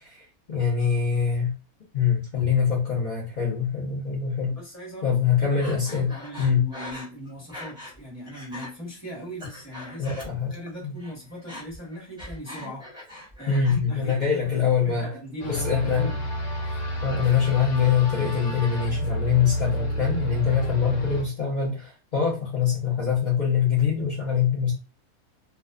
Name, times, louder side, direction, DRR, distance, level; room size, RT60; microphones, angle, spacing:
voice 1, 0.0-1.5 1.9-4.6 5.0-6.1 6.4-6.7 10.0-10.5 10.8-11.0 12.6-12.7 13.5-15.1 15.5-16.1 17.0-24.7, left 7 dB, 50° left, -6 dB, 0.5 m, -24 dB
voice 2, 4.5-5.6 5.9-10.2 10.5-12.8 13.4-16.3, equal, 10° left, -5 dB, 1.0 m, -39 dB
Breathing, 5.6-8.0 8.3-8.7 9.2-10.7 11.0-13.8 14.1-14.7, left 1 dB, 5° right, 0.4 m, -41 dB
sound 1, 15.4-21.2, equal, 85° left, 1.3 m, -30 dB
2.5 x 2.3 x 2.3 m, 0.32 s
omnidirectional pair, 1.6 m